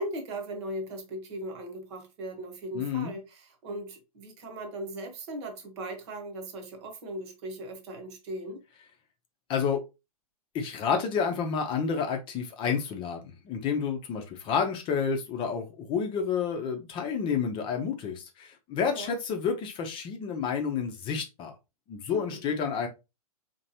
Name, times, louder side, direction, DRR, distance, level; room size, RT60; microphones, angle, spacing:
voice 1, 0.0-8.6 18.8-19.1 22.1-22.4, right 1 dB, 45° right, 1.2 m, -38 dB
voice 2, 2.7-3.1 9.5-9.8 10.5-21.5 21.9-22.9, left 6 dB, 25° left, 0.8 m, -30 dB
4.1 x 3.0 x 2.8 m
figure-of-eight pair, 105°, 19 cm